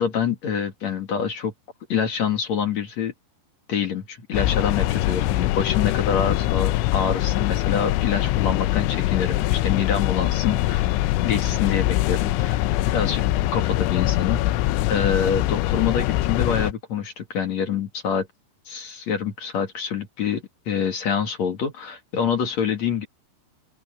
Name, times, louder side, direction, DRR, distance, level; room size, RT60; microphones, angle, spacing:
voice 1, 0.0-1.5 1.9-3.1 3.7-10.9 11.2-18.3 18.7-23.1, left 7 dB, 50° left, 2.5 m, -26 dB
sound 1, 4.3-16.7, left 16 dB, 85° left, 3.1 m, -23 dB
open air
omnidirectional pair, 5.4 m